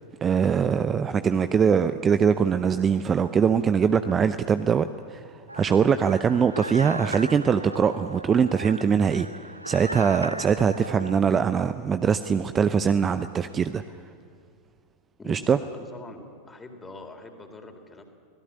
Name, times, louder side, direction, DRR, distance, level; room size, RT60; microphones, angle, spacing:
voice 1, 0.2-5.2 5.5-9.3 9.7-13.8 15.3-15.6, right 7 dB, 20° right, 11 dB, 0.7 m, -22 dB
sound 1, 5.5-11.2, right 1 dB, 85° right, 0.6 m, -37 dB
voice 2, 15.2-18.0, left 2 dB, 15° left, 5 dB, 3.5 m, -44 dB
25.0 x 18.0 x 10.0 m, 2.3 s
figure-of-eight pair, 90°, 0 cm